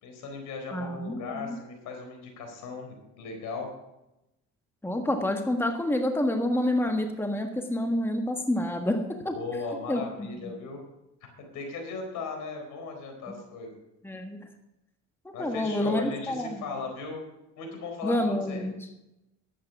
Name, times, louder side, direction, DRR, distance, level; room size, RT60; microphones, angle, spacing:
voice 1, 0.0-3.7 9.3-10.8 11.5-13.7 15.3-17.2 17.6-18.7, left 4 dB, 70° left, 3 dB, 4.1 m, -37 dB
voice 2, 0.7-1.5 4.8-9.3 9.9-10.5 13.3-13.4 14.0-14.4 15.2-16.7 18.0-18.7, left 1 dB, 5° left, 4 dB, 1.4 m, -28 dB
11.0 x 8.8 x 5.9 m, 0.91 s
supercardioid pair, 80°, 32 cm